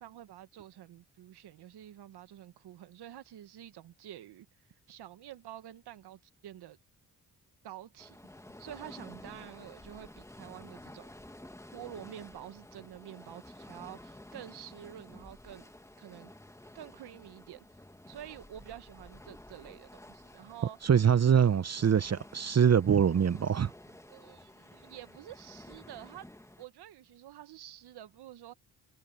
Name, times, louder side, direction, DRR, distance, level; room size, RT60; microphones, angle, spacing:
voice 1, 0.0-4.5 4.9-6.8 7.6-8.2 8.6-11.1 11.7-15.7 16.0-16.3 16.7-17.7 18.1-20.8 24.1-26.3 26.6-28.5, right 12 dB, 75° right, 1.3 m, -48 dB
sound 1, 8.0-26.7, left 1 dB, 5° left, 1.8 m, -52 dB
voice 2, 20.8-23.7, right 8 dB, 40° right, 0.9 m, -24 dB
supercardioid pair, 55°, 40 cm